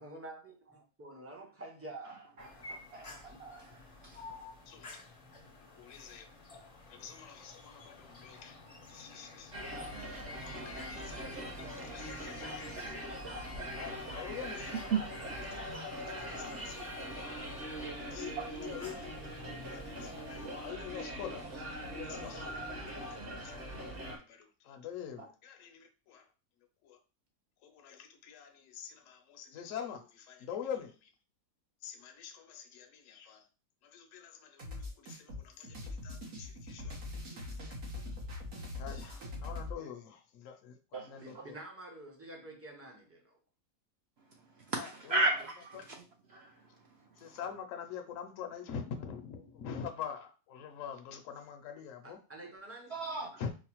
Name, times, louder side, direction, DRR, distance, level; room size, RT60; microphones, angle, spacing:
voice 1, 0.0-2.3 3.3-3.4 41.2-43.4 52.0-52.9, right 2 dB, 20° right, 0.4 m, -48 dB
voice 2, 2.0-4.5 14.8-15.7 17.8-18.5 21.4-21.6 25.2-25.3 39.0-39.2 40.9-41.5 44.2-46.0 46.3-47.4 52.9-53.4, right 3 dB, 65° right, 0.7 m, -37 dB
sound 1, 2.4-20.7, left 3 dB, 40° left, 0.5 m, -53 dB
voice 3, 5.6-6.3 6.9-8.6 8.9-9.5 10.0-13.1 13.7-14.8 16.0-17.4 17.6-21.4 21.9-26.3 26.8-27.0 27.6-31.1 31.8-33.4 33.8-37.4 38.8-40.8 41.1-41.6 44.8-44.9 45.1-45.2 45.7-45.9 47.2-52.2 53.4-53.5, left 8 dB, 70° left, 0.9 m, -45 dB
sound 2, 9.5-24.2, equal, 45° right, 1.0 m, -42 dB
sound 3, 34.6-39.7, left 2 dB, 80° right, 1.6 m, -42 dB
4.7 x 2.1 x 2.9 m
omnidirectional pair, 1.5 m